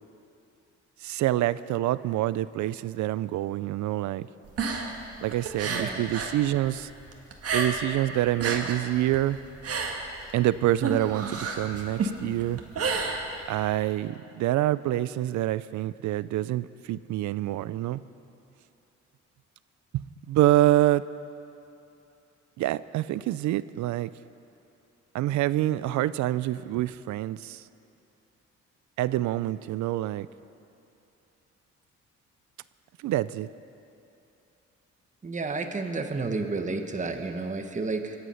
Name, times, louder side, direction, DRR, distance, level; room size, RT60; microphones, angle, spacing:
voice 1, 1.0-4.3 5.2-6.9 7.5-9.4 10.3-12.6 13.5-18.0 19.9-21.1 22.6-24.1 25.1-27.6 29.0-30.3 33.0-33.5, right 14 dB, 75° right, 17 dB, 0.5 m, -26 dB
sound 1, 4.4-6.4 6.7-8.0 8.3-13.7, right 4 dB, 50° right, 1.7 m, -31 dB
voice 2, 5.7-6.0 35.2-38.1, right 3 dB, 25° right, 6 dB, 1.2 m, -31 dB
23.0 x 8.1 x 5.7 m, 2.8 s
cardioid pair, 90°, 30 cm